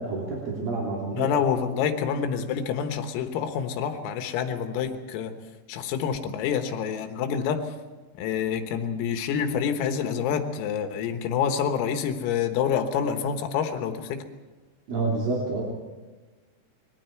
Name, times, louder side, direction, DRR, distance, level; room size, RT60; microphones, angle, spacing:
voice 1, 0.0-1.3 14.9-15.6, right 3 dB, 50° right, -3 dB, 4.2 m, -28 dB
voice 2, 1.1-5.3 5.7-7.7 8.2-14.2, left 7 dB, 85° left, 6 dB, 4.0 m, -27 dB
28.0 x 22.0 x 4.6 m, 1.2 s
omnidirectional pair, 5.9 m